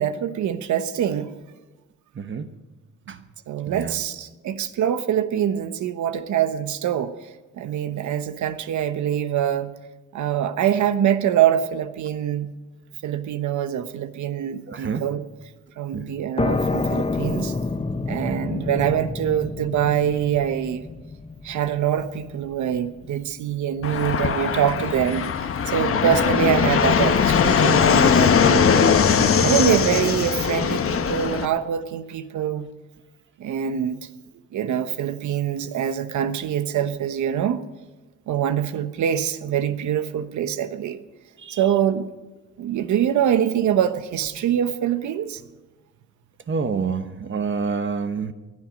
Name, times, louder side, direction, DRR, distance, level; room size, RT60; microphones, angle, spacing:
voice 1, 0.0-1.3 3.1-3.2 3.5-9.7 10.1-12.5 13.0-15.2 15.8-17.5 18.1-20.9 21.4-25.3 25.7-29.0 29.4-32.7 33.4-34.1 34.5-37.6 38.3-41.0 41.5-42.1 42.6-45.4, right 9 dB, 70° right, 11 dB, 1.0 m, -24 dB
voice 2, 2.1-2.5 3.1-3.2 3.7-4.0 14.7-15.0 15.9-16.1 25.9-26.2 29.2-29.5 41.4-41.6 46.5-48.3, right 5 dB, 40° right, 9 dB, 1.2 m, -28 dB
sound 1, 16.4-23.8, left 3 dB, 20° left, 0.8 m, -29 dB
Fixed-wing aircraft airplane, 23.8-31.5, left 7 dB, 45° left, 1.1 m, -20 dB
20.0 x 12.0 x 5.3 m, 1.2 s
cardioid pair, 90°, 30 cm